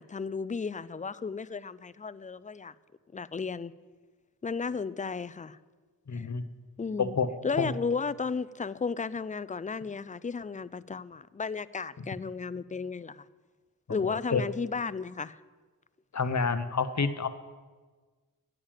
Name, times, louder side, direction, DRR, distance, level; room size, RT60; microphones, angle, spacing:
voice 1, 0.0-2.7 3.1-3.7 4.4-5.6 6.1-6.3 6.8-7.2 7.4-13.3 13.9-15.4, left 5 dB, 25° left, 0.4 m, -34 dB
voice 2, 6.1-6.4 7.0-7.3 7.6-7.7 12.0-12.1 13.9-14.4 16.1-17.3, left 5 dB, 50° left, 0.9 m, -29 dB
9.9 x 7.4 x 8.8 m
wide cardioid pair, 65°, 35 cm